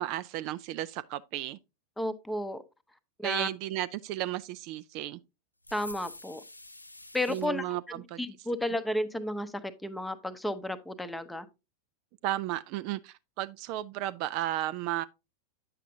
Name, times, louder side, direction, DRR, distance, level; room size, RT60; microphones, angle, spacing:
voice 1, 0.0-1.6 3.2-5.2 7.3-8.2 12.2-15.0, right 14 dB, 45° right, 0.3 m, -34 dB
voice 2, 2.0-2.6 3.2-3.5 5.7-6.4 7.1-7.7 8.2-9.5 9.8-11.5, left 1 dB, 5° left, 0.7 m, -32 dB
sound 1, 5.6-7.5, left 2 dB, 85° left, 0.5 m, -47 dB
9.2 x 6.7 x 2.7 m
figure-of-eight pair, 90°, 0 cm